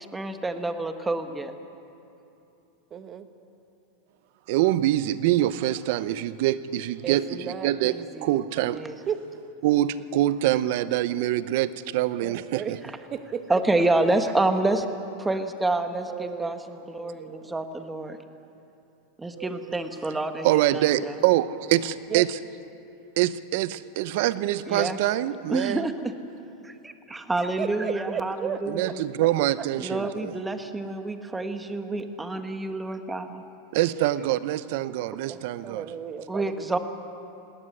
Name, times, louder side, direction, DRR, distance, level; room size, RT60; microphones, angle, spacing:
voice 1, 0.1-1.5 8.7-9.0 13.5-14.9 15.2-18.2 19.2-20.5 20.7-21.2 24.7-25.0 25.5-26.1 26.6-29.0 29.8-33.4 36.3-36.8, right 2 dB, 10° right, 7 dB, 1.6 m, -28 dB
voice 2, 2.9-3.3 7.0-8.4 9.1-9.2 12.2-12.8 13.1-13.4 16.1-16.6 22.1-22.2 27.6-28.9 30.0-30.1 35.3-36.8, right 8 dB, 30° right, 9 dB, 1.4 m, -34 dB
voice 3, 4.5-7.9 8.2-8.9 9.6-12.8 17.0-17.6 19.4-19.6 20.4-22.4 23.2-25.8 28.7-30.3 33.7-35.9, right 14 dB, 65° right, 16 dB, 0.8 m, -25 dB
19.5 x 18.0 x 9.8 m, 2.8 s
hypercardioid pair, 120°, 0 cm